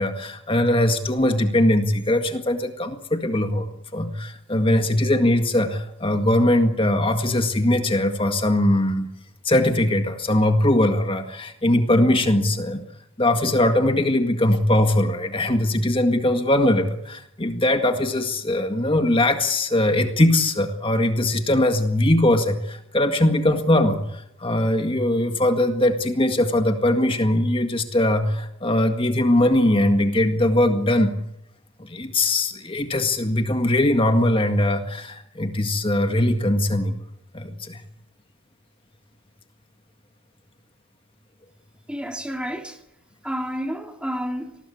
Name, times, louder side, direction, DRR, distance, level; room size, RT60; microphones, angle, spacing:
voice 1, 0.0-3.7 3.9-9.1 9.4-12.8 13.2-31.1 31.8-36.9 37.3-37.8, left 1 dB, 25° left, 1.8 m, -21 dB
voice 2, 41.9-42.8 43.2-44.6, equal, 5° right, 2.4 m, -30 dB
27.0 x 19.5 x 8.6 m
head